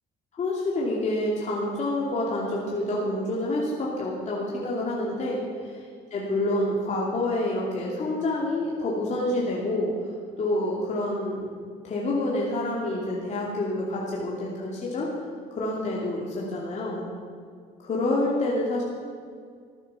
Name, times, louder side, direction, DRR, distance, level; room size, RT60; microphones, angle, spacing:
voice 1, 0.4-5.8 6.1-9.9 10.4-11.5 11.8-15.1 15.5-17.0 17.8-18.8, left 1 dB, 45° left, -4 dB, 2.7 m, -27 dB
14.5 x 9.1 x 7.1 m, 2.1 s
cardioid pair, 110°, 17 cm